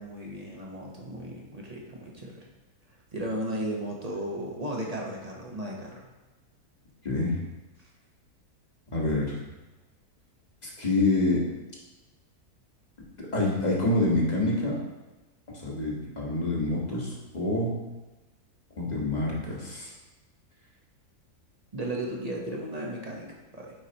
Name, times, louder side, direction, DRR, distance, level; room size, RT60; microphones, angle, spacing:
voice 1, 0.0-2.4 3.1-6.1 7.8-7.9 21.7-23.7, right 1 dB, 30° right, -2 dB, 1.0 m, -35 dB
voice 2, 7.0-7.4 8.9-9.4 10.6-11.4 13.3-14.8 15.6-17.7 18.8-19.9, left 2 dB, 30° left, -4 dB, 1.4 m, -27 dB
9.2 x 4.9 x 2.9 m, 1.1 s
omnidirectional pair, 1.7 m